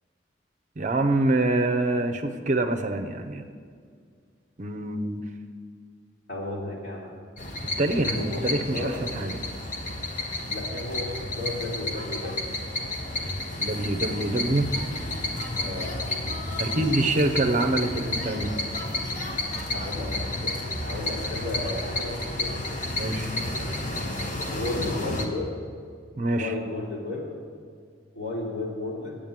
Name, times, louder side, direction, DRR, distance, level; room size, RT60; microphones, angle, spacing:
voice 1, 0.8-3.4 4.6-5.3 7.8-9.4 13.6-14.7 16.6-18.6 22.9-23.3 26.2-26.5, right 2 dB, 40° right, 7 dB, 0.6 m, -25 dB
voice 2, 6.3-7.1 8.0-8.9 10.4-12.5 15.5-16.0 19.7-22.6 24.5-25.5 26.3-27.3 28.1-29.2, left 2 dB, 70° left, -4 dB, 3.1 m, -33 dB
sound 1, 7.4-25.3, left 2 dB, 45° left, 1.2 m, -31 dB
9.1 x 8.7 x 7.3 m, 2.1 s
head